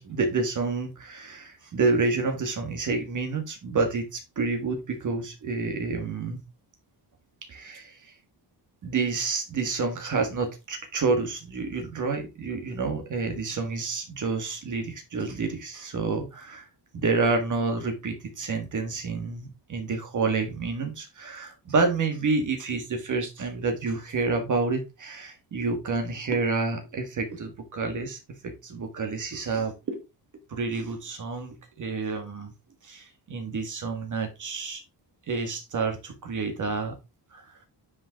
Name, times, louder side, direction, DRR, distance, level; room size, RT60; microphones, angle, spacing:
voice 1, 0.0-6.4 7.5-8.1 8.8-16.7 16.9-30.0 30.5-32.5 32.8-34.8 35.3-37.0 37.3-37.7, right 4 dB, 45° right, 4 dB, 1.9 m, -29 dB
9.5 x 5.3 x 3.6 m, 0.25 s
cardioid pair, 155°, 41 cm